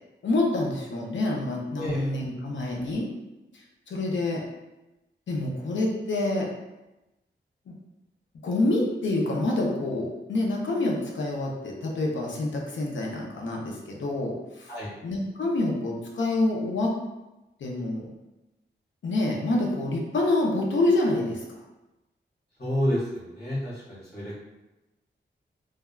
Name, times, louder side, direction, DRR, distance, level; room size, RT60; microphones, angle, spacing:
voice 1, 0.2-3.1 3.5-4.4 5.3-6.5 7.7-7.8 8.4-14.7 15.0-16.9 17.6-18.1 19.0-21.6, left 2 dB, 80° left, -1 dB, 0.6 m, -27 dB
voice 2, 22.6-24.4, equal, 60° left, -10 dB, 1.5 m, -29 dB
3.3 x 2.2 x 2.2 m, 1.0 s
wide cardioid pair, 150°, 19 cm